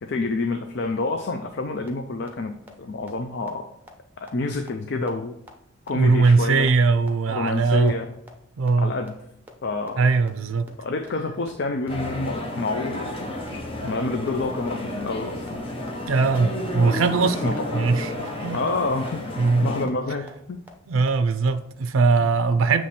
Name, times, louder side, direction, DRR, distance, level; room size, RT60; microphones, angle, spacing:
voice 1, 0.0-2.5 2.8-3.7 4.2-5.4 5.9-6.7 7.3-8.1 8.8-9.1 9.6-10.0 10.8-13.1 13.8-15.5 17.4-17.9 18.5-19.2 19.6-20.6, left 3 dB, 55° left, 0.5 m, -28 dB
sound 1, 1.9-2.0 2.3-2.4 2.7-2.8 3.1-3.2 3.5-3.6 3.9-4.0 4.3-4.4 4.7-4.8 5.1-5.2 5.5-5.6 5.9-6.0 6.3-6.4 6.7-6.8 7.1-7.2 7.5-7.6 7.9-8.0 8.3-8.4 8.7-8.8 9.1-9.2 9.5-9.6 9.9-10.0 10.3-10.4 10.7-10.8 11.1-11.2 11.5-11.6 11.8-11.9 12.2-12.3 12.7-12.8 13.1-13.2 13.5-13.6 13.9-14.0 14.3-14.4 14.7-14.8 15.1-15.2 15.5-15.6 15.9-16.0 16.3-16.4 16.7-16.8 17.1-17.2 17.5-17.6 17.9-18.0 18.3-18.4 18.7-18.8 19.1-19.2 19.5-19.6 19.9-20.0 20.3-20.4 20.7-20.8 21.1-21.2 21.5-21.6, equal, 10° right, 0.7 m, -44 dB
voice 2, 5.9-8.0 8.6-8.9 10.0-10.7 16.1-18.6 19.4-19.7 20.9-22.9, right 4 dB, 70° right, 0.4 m, -21 dB
sound 2, 11.9-19.9, left 1 dB, 25° left, 0.9 m, -32 dB
7.6 x 3.1 x 4.2 m
head